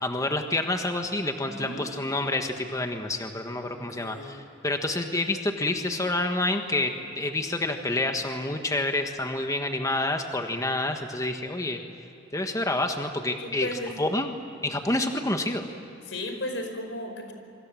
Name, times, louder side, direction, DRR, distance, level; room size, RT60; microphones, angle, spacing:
voice 1, 0.0-11.8 12.3-13.7 14.0-14.3 14.6-15.6, left 2 dB, 20° left, 5 dB, 1.5 m, -28 dB
voice 2, 1.4-1.8 3.6-4.4 13.4-14.0 16.1-17.3, left 1 dB, 85° left, 6 dB, 4.7 m, -35 dB
27.5 x 25.0 x 7.6 m, 2.8 s
head